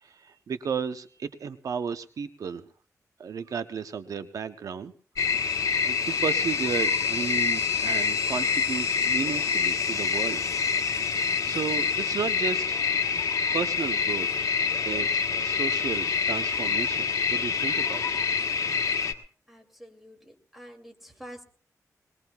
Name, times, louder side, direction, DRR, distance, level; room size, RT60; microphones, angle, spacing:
voice 1, 0.0-2.7 3.2-4.9 5.2-5.4 5.8-10.4 11.0-12.8 13.5-14.3 14.8-18.2, right 6 dB, 70° right, 10 dB, 0.7 m, -33 dB
sound 1, 5.2-19.1, left 5 dB, 60° left, 1.4 m, -26 dB
voice 2, 19.5-21.4, equal, 5° right, 4 dB, 2.6 m, -47 dB
21.5 x 20.5 x 2.3 m, 0.42 s
wide cardioid pair, 110°, 6 cm